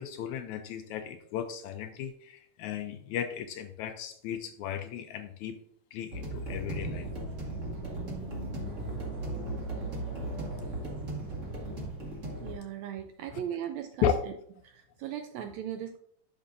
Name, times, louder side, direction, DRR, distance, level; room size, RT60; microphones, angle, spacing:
voice 1, 0.0-5.6 5.9-7.1 13.3-13.4 14.0-14.2, left 9 dB, 80° left, 8 dB, 1.8 m, -34 dB
sound 1, 6.1-12.5, equal, 30° right, 1.7 m, -38 dB
sound 2, 6.3-11.9, right 4 dB, 60° right, 2.7 m, -41 dB
voice 2, 12.4-14.1 14.6-16.0, right 10 dB, 80° right, 6 dB, 1.6 m, -38 dB
11.0 x 6.3 x 2.5 m, 0.67 s
omnidirectional pair, 3.7 m